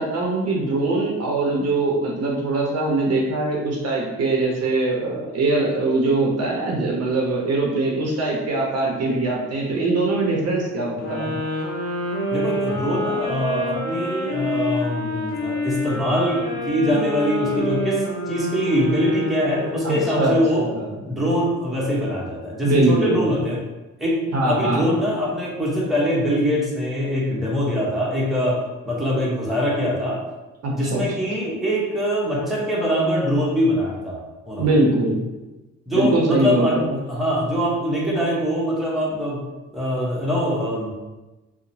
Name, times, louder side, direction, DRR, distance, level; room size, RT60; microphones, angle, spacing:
voice 1, 0.0-11.4 19.8-20.9 22.6-23.2 24.3-24.8 30.6-31.0 34.6-35.2 35.9-37.0, right 2 dB, 55° right, -2 dB, 0.7 m, -22 dB
sound 1, 11.0-20.2, left 1 dB, 60° left, 0.9 m, -27 dB
voice 2, 12.3-20.6 21.1-23.6 24.0-24.2 24.4-28.6 28.9-30.2 30.7-34.2 34.5-34.7 35.9-36.8 37.1-39.4 39.7-40.9, equal, ahead, -6 dB, 0.8 m, -23 dB
2.8 x 2.1 x 2.6 m, 1.1 s
cardioid pair, 90°, 30 cm